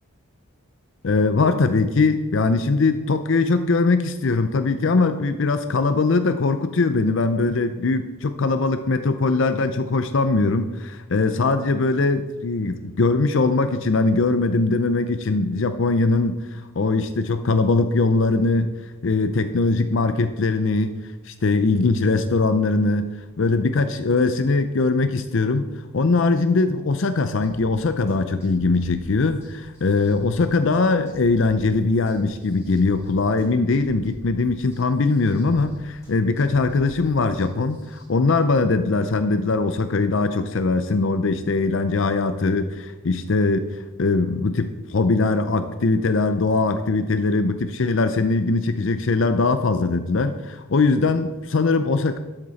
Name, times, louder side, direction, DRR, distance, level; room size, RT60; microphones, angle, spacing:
voice 1, 1.0-20.9 21.3-23.1 23.4-25.6 25.9-52.2, left 3 dB, 60° left, 10 dB, 0.5 m, -21 dB
sound 1, 27.4-38.0, equal, 15° left, 3.8 m, -47 dB
12.5 x 8.0 x 4.1 m, 1.1 s
head